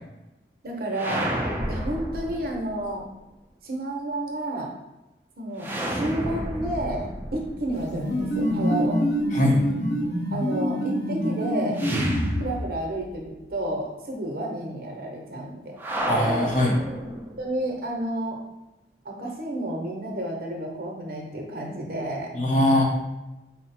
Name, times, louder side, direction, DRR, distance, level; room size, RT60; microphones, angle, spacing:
voice 1, 0.6-1.3 1.7-3.1 3.6-4.7 5.4-9.0 10.3-11.8 12.4-15.8 17.4-18.4 19.0-22.3, right 1 dB, 55° right, 0 dB, 0.7 m, -31 dB
sound 1, 0.9-2.9 5.6-8.6 11.7-13.1 13.4-13.5 15.8-17.5, equal, 10° right, 0.4 m, -30 dB
sound 2, 7.7-12.6, equal, 85° left, 0.9 m, -26 dB
voice 2, 9.3-9.6 16.1-16.8 22.3-22.8, left 1 dB, 45° left, 0 dB, 0.7 m, -21 dB
4.3 x 2.0 x 4.1 m, 1.0 s
head